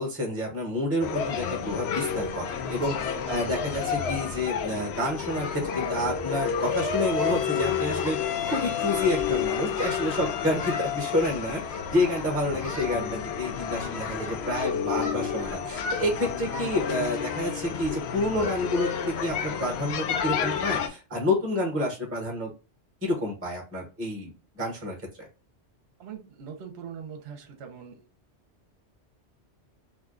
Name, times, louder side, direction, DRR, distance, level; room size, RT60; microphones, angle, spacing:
voice 1, 0.0-22.5 23.0-25.3, left 1 dB, 15° right, 0 dB, 0.8 m, -29 dB
sound 1, 1.0-20.9, left 7 dB, 70° left, 0.8 m, -30 dB
Singing, 3.3-4.5 4.8-5.0 5.3-5.4 5.6-6.0 6.3-6.5 6.8-7.7 8.0-9.3 9.7-10.9 11.6-12.3 12.6-12.9 13.4-16.0 16.5-16.7 17.1-17.2 17.7-17.8 18.2-18.5, left 2 dB, 55° left, 1.3 m, -41 dB
voice 2, 26.0-28.0, right 7 dB, 65° right, 6 dB, 0.9 m, -42 dB
2.7 x 2.2 x 3.6 m, 0.33 s
omnidirectional pair, 1.2 m